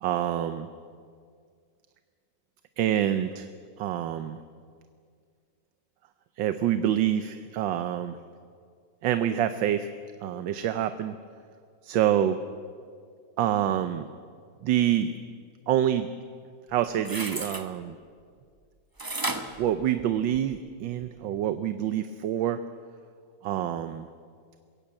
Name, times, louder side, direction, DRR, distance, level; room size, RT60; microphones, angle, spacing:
voice 1, 0.0-0.7 2.8-3.5 3.8-4.4 6.4-8.2 9.0-9.9 10.2-11.2 11.8-12.4 13.4-14.1 14.6-15.1 15.7-16.1 16.7-18.0 19.6-22.6 23.4-24.1, right 11 dB, 80° right, 10 dB, 1.5 m, -26 dB
sound 1, 16.7-17.7 19.0-20.6 21.0-21.1, right 2 dB, 15° right, 0.7 m, -33 dB
21.5 x 16.0 x 8.7 m, 2.1 s
omnidirectional pair, 2.0 m